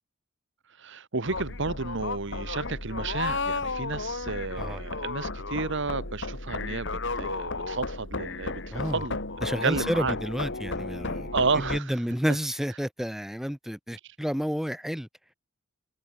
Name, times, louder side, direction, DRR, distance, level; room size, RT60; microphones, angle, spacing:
voice 1, 0.8-6.9 7.1-9.2 9.6-10.1 11.3-12.0 14.0-14.1, right 4 dB, 60° right, 1.5 m, -31 dB
sound 1, 1.2-11.8, left 3 dB, 60° left, 3.2 m, -33 dB
voice 2, 8.7-9.0 9.4-11.3 11.6-15.1, equal, ahead, 0.9 m, -30 dB
head